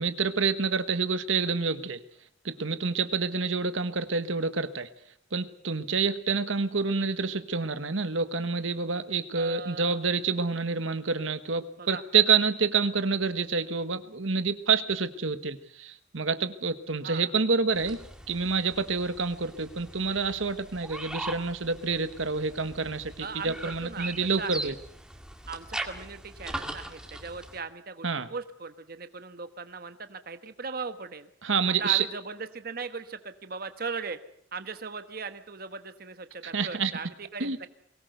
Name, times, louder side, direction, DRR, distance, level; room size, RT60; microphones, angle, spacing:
voice 1, 0.0-2.0 2.4-4.9 5.3-18.0 18.3-24.7 28.0-28.3 31.4-32.0 36.5-36.9 37.4-37.7, right 5 dB, 90° right, 11 dB, 1.3 m, -28 dB
voice 2, 9.3-10.0 11.8-12.0 17.0-17.3 23.2-24.7 25.5-31.3 31.7-34.2 34.5-37.7, right 5 dB, 50° right, 10 dB, 1.2 m, -38 dB
sound 1, 17.7-27.6, right 1 dB, 5° right, 2.0 m, -41 dB
22.5 x 19.0 x 8.0 m, 0.66 s
head